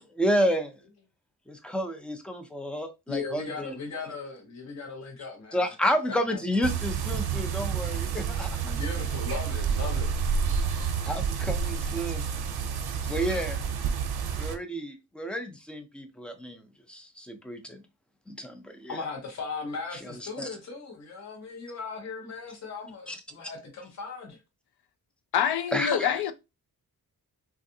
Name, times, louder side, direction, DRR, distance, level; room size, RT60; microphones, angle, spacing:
voice 1, 0.1-0.7 1.5-3.7 5.5-8.6 10.7-10.8 11.0-12.3 13.0-13.6 14.4-16.6 16.9-17.8 18.3-19.0 20.0-20.5 23.1-23.2 25.7-26.1, equal, 5° left, 0.3 m, -30 dB
voice 2, 3.1-5.7 6.1-6.4 8.6-10.1 18.9-24.4, left 4 dB, 45° left, 0.7 m, -38 dB
sound 1, 6.6-14.6, right 6 dB, 90° right, 0.6 m, -29 dB
voice 3, 25.3-26.3, left 9 dB, 85° left, 0.5 m, -25 dB
3.4 x 2.4 x 2.6 m
wide cardioid pair, 175°, 37 cm